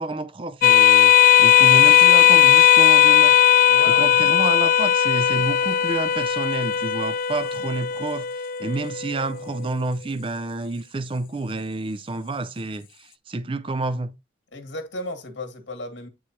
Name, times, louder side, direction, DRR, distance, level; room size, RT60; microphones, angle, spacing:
voice 1, 0.0-3.4 3.9-14.2, right 2 dB, 30° right, 0.4 m, -29 dB
sound 1, 0.6-9.6, left 10 dB, 50° left, 0.3 m, -17 dB
voice 2, 3.7-4.1 4.5-4.6 14.5-16.1, left 2 dB, 90° left, 1.8 m, -34 dB
8.5 x 4.7 x 2.9 m
head